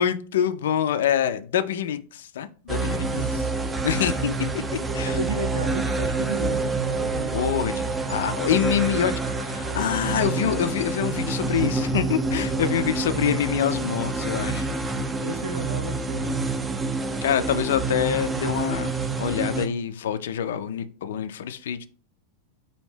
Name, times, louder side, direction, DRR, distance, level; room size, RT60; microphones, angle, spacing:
voice 1, 0.0-3.1 3.8-4.3 4.9-5.2 7.3-14.7 17.2-18.9 19.2-21.9, left 9 dB, 60° left, 12 dB, 0.3 m, -25 dB
sound 1, 2.7-19.7, right 3 dB, 15° right, 0.4 m, -27 dB
voice 2, 3.1-3.5 5.0-8.2 10.2-10.8 14.9-16.6, right 2 dB, 75° right, 3 dB, 0.4 m, -34 dB
4.2 x 2.7 x 3.2 m, 0.39 s
figure-of-eight pair, 90°, 0 cm